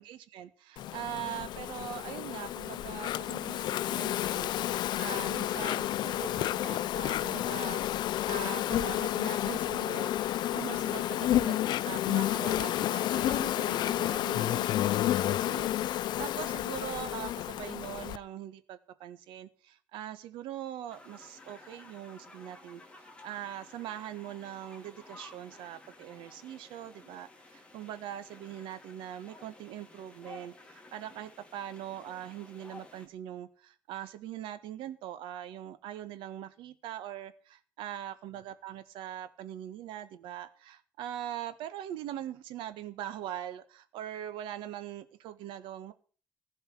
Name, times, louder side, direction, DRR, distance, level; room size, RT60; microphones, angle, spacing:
voice 1, 0.0-45.9, right 11 dB, 85° right, 12 dB, 1.5 m, -42 dB
Insect, 0.8-18.2, left 13 dB, 60° left, 0.6 m, -31 dB
sound 1, 20.9-33.1, left 2 dB, 15° left, 2.6 m, -54 dB
15.5 x 5.5 x 9.4 m, 0.41 s
cardioid pair, 140°, 8 cm